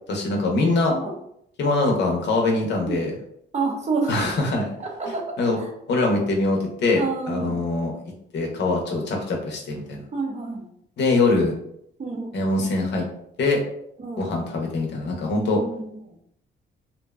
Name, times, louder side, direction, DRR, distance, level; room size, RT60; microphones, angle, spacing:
voice 1, 0.1-0.9 1.6-3.1 4.1-4.7 5.4-5.6 5.9-7.9 8.3-10.0 11.0-11.5 12.3-13.1 13.4-13.6 14.2-15.6, left 2 dB, 60° left, 1 dB, 0.7 m, -23 dB
voice 2, 3.5-4.3 4.8-5.2 5.6-5.7 6.9-7.6 10.1-10.7 12.0-12.3 14.0-14.3 15.5-16.2, right 4 dB, 35° right, 1 dB, 0.5 m, -29 dB
2.6 x 2.1 x 2.3 m, 0.73 s
cardioid pair, 90°, 20 cm